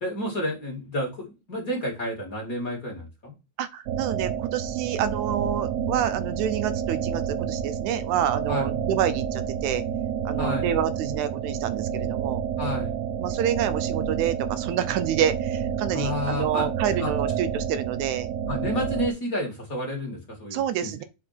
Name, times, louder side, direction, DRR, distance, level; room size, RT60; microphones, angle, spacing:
voice 1, 0.0-3.4 8.5-8.7 10.4-10.7 12.6-13.0 15.9-17.1 18.5-20.9, left 1 dB, 30° left, 2.4 m, -30 dB
voice 2, 3.6-9.8 10.3-12.4 13.2-18.3 20.5-21.0, right 10 dB, 85° right, 2.1 m, -28 dB
sound 1, 3.9-19.1, right 8 dB, 70° right, 1.7 m, -29 dB
6.6 x 4.4 x 5.7 m
omnidirectional pair, 3.3 m